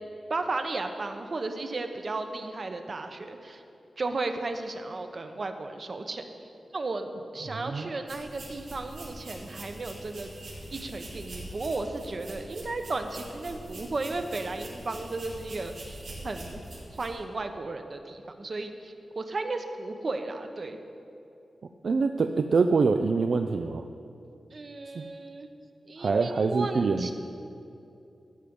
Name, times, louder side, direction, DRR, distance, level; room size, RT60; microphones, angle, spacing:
voice 1, 0.3-3.6 4.0-10.3 10.7-16.6 16.9-20.8 24.5-25.5 25.9-27.1, right 3 dB, 45° right, 6 dB, 0.9 m, -34 dB
voice 2, 7.4-7.9 21.8-23.8 24.9-25.0 26.0-27.1, right 4 dB, 65° right, 6 dB, 0.4 m, -25 dB
sound 1, 8.1-17.1, right 1 dB, 85° right, 3.3 m, -43 dB
14.0 x 5.2 x 8.7 m, 2.7 s
wide cardioid pair, 110°, 0 cm